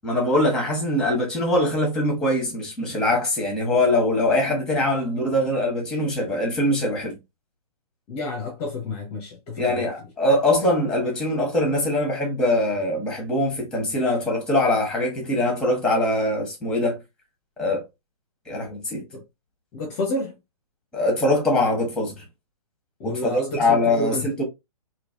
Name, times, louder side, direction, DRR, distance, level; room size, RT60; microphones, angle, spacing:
voice 1, 0.0-7.2 9.6-17.0 17.6-17.8 18.5-19.0 20.9-22.2 23.0-24.4, left 1 dB, 5° left, 1.5 m, -22 dB
voice 2, 8.1-9.9 19.1-19.2 19.7-20.4 23.0-24.3, left 1 dB, 30° left, 0.9 m, -30 dB
3.1 x 2.9 x 2.8 m
hypercardioid pair, 140°, 19 cm